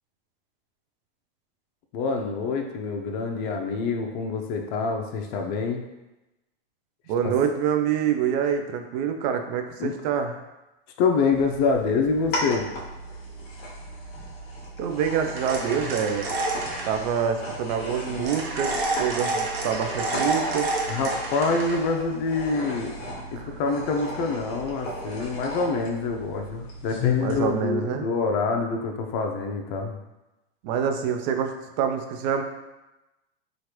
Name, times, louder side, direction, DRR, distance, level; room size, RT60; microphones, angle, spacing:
voice 1, 1.9-5.8 7.2-7.3 9.8-9.9 11.0-12.7 20.9-23.0 23.3-30.0, left 4 dB, 50° left, 3 dB, 0.5 m, -26 dB
voice 2, 7.1-10.3 14.8-16.3 16.8-20.7 23.4-23.5 27.2-28.1 30.6-32.4, right 8 dB, 50° right, 6 dB, 0.5 m, -26 dB
sound 1, 11.3-27.4, left 1 dB, 30° left, 1.0 m, -35 dB
sound 2, 15.4-16.9 18.3-21.8, right 2 dB, 90° right, 0.8 m, -29 dB
3.1 x 2.5 x 2.9 m, 1.0 s
hypercardioid pair, 120°, 29 cm